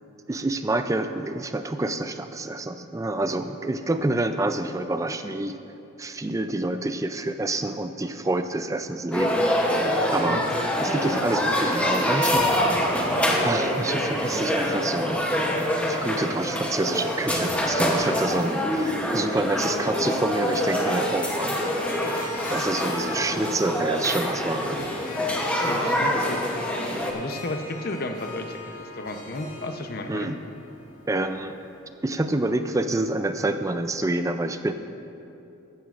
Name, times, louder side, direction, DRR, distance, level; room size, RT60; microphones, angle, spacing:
voice 1, 0.3-5.6 6.0-10.4 10.8-12.9 13.4-15.2 15.9-21.6 21.9-22.0 22.5-24.8 30.1-30.4 31.1-31.6 32.0-34.7, right 2 dB, 15° right, 9 dB, 0.3 m, -27 dB
sound 1, 9.1-27.1, equal, 5° left, 0.8 m, -25 dB
Harp, 20.5-31.8, left 2 dB, 80° left, 2.4 m, -39 dB
voice 2, 25.6-30.4, left 2 dB, 45° left, 6 dB, 0.7 m, -34 dB
15.0 x 12.0 x 2.5 m, 2.8 s
head